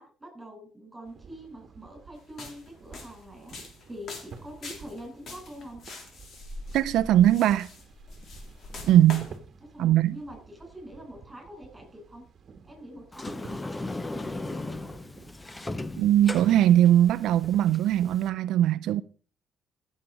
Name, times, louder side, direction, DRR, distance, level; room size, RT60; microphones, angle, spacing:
voice 1, 0.0-3.5 3.9-5.8 9.7-12.2 12.6-14.9, equal, 15° right, 8.0 m, -45 dB
sound 1, 1.0-18.4, right 5 dB, 50° right, 1.4 m, -51 dB
sound 2, 2.3-9.4, left 2 dB, 60° left, 3.5 m, -43 dB
voice 2, 6.7-7.7 8.9-9.3 9.8-10.2 16.0-19.0, right 12 dB, 85° right, 0.4 m, -20 dB
Sliding door, 13.1-18.3, left 2 dB, 20° left, 0.7 m, -37 dB
15.5 x 7.4 x 4.9 m
cardioid pair, 100°, 0 cm